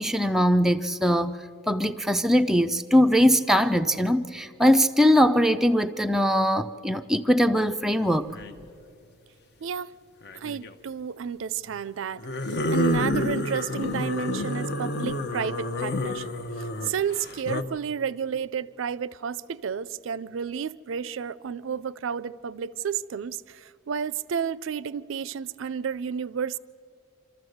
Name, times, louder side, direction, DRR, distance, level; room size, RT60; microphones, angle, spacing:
voice 1, 0.0-1.4 1.7-8.3, equal, ahead, 0.4 m, -21 dB
sound 1, 8.3-8.6 10.2-10.7 12.2-17.6, left 1 dB, 50° left, 0.8 m, -29 dB
voice 2, 9.6-9.9 10.3-16.3 16.6-26.6, right 7 dB, 70° right, 0.4 m, -31 dB
26.5 x 13.0 x 7.9 m
head